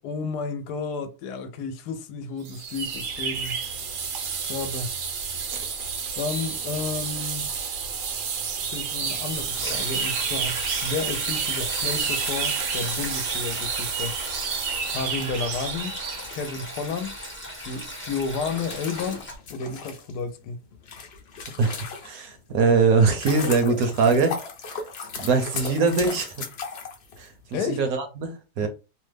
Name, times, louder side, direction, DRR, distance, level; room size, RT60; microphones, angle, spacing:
voice 1, 0.0-3.6 4.5-5.0 6.2-7.5 8.6-14.2 14.9-16.0 16.3-17.1 17.6-19.2 19.5-20.6 27.5-27.8 28.6-28.7, left 4 dB, 80° left, 1.1 m, -32 dB
sound 1, 2.4-16.3, right 6 dB, 85° right, 1.4 m, -30 dB
Sink (filling or washing), 9.3-19.4, equal, 10° left, 0.5 m, -37 dB
sound 2, 18.3-22.4 22.9-27.6, left 5 dB, 55° left, 0.7 m, -36 dB
voice 2, 21.6-24.4 25.2-26.3 27.2-28.7, right 4 dB, 65° right, 1.0 m, -22 dB
3.1 x 2.1 x 3.2 m
omnidirectional pair, 1.8 m